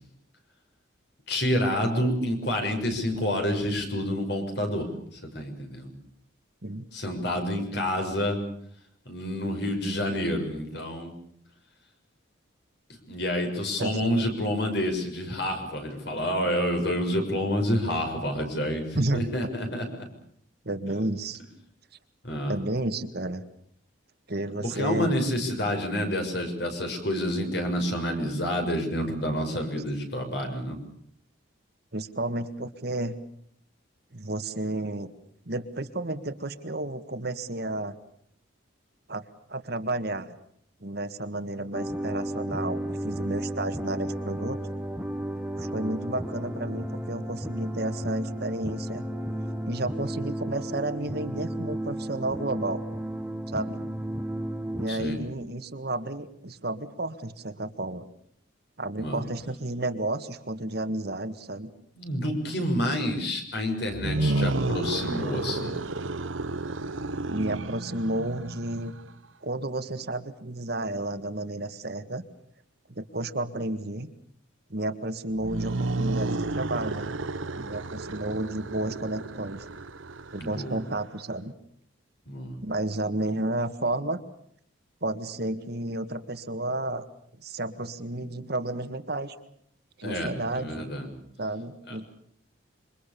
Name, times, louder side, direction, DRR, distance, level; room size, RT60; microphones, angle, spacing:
voice 1, 1.3-5.9 6.9-8.4 9.0-11.1 13.1-20.1 22.2-22.6 24.6-30.8 54.9-55.2 59.0-59.2 61.9-65.8 80.4-80.8 82.3-82.6 90.0-91.1 91.9-92.0, equal, 55° left, 4 dB, 6.6 m, -28 dB
voice 2, 20.7-21.4 22.5-23.4 24.3-25.1 31.9-33.1 34.1-35.1 35.5-38.0 39.1-40.3 40.8-44.6 45.6-49.0 49.6-52.8 53.5-53.8 54.7-58.1 58.8-61.7 67.3-68.9 69.4-72.2 73.0-74.1 74.7-77.0 77.5-79.6 80.3-81.5 82.6-84.2 85.0-87.1 87.4-89.4 90.0-90.9 91.4-92.1, right 2 dB, 55° right, 9 dB, 1.7 m, -32 dB
sound 1, 41.7-54.9, right 1 dB, 10° right, 1.2 m, -33 dB
sound 2, 63.9-69.1 75.3-81.0, right 2 dB, 80° right, 1.1 m, -31 dB
27.0 x 24.5 x 6.9 m, 0.67 s
head